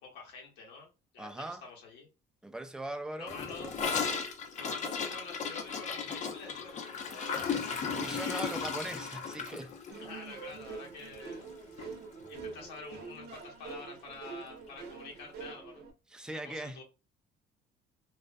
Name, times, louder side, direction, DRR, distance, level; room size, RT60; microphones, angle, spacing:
voice 1, 0.0-2.1 3.2-4.0 4.5-8.5 10.0-12.0 12.3-15.8 16.3-16.8, left 4 dB, 85° left, 0.9 m, -48 dB
voice 2, 1.2-1.6 2.4-3.3 7.9-9.7 16.1-16.8, right 1 dB, 5° right, 0.3 m, -40 dB
Gurgling / Toilet flush, 3.3-11.5 11.8-11.9 12.2-12.7 12.9-13.0 13.3-13.4 14.4-14.5, left 6 dB, 45° left, 0.5 m, -36 dB
sound 1, 9.9-15.9, right 4 dB, 80° right, 0.7 m, -45 dB
2.4 x 2.1 x 2.4 m
cardioid pair, 110°, 17 cm